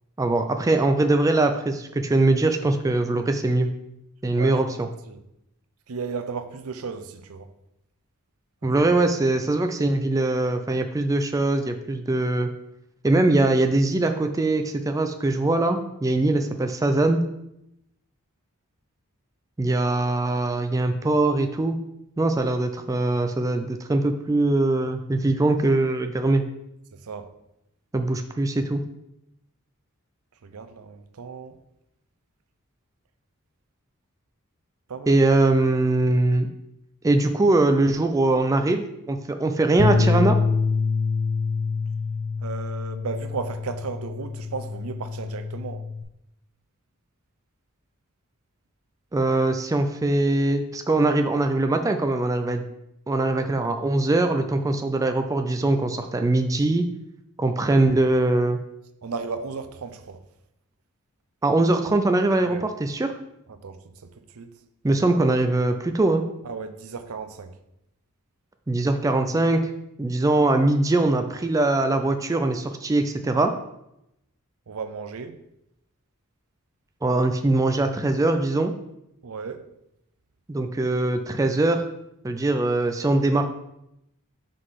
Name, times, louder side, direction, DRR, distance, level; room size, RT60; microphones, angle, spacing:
voice 1, 0.2-3.7 4.2-4.9 8.6-12.5 13.0-17.2 19.6-21.8 22.2-26.4 27.9-28.8 35.1-36.5 37.0-40.4 49.1-52.7 53.1-56.8 57.4-58.6 61.4-63.1 64.8-66.2 68.7-69.7 70.0-73.5 77.0-78.7 80.5-81.8 82.2-83.5, right 2 dB, 15° right, 0.3 m, -22 dB
voice 2, 4.3-4.8 5.1-5.2 5.9-7.5 8.6-9.0 26.9-27.3 30.4-31.6 34.9-35.2 42.4-45.9 59.0-60.2 62.4-62.6 63.5-64.5 66.4-67.6 74.7-75.4 79.2-79.7, right 5 dB, 80° right, 0.6 m, -35 dB
Bass guitar, 39.8-46.0, left 4 dB, 75° left, 0.7 m, -26 dB
4.9 x 4.0 x 5.6 m
head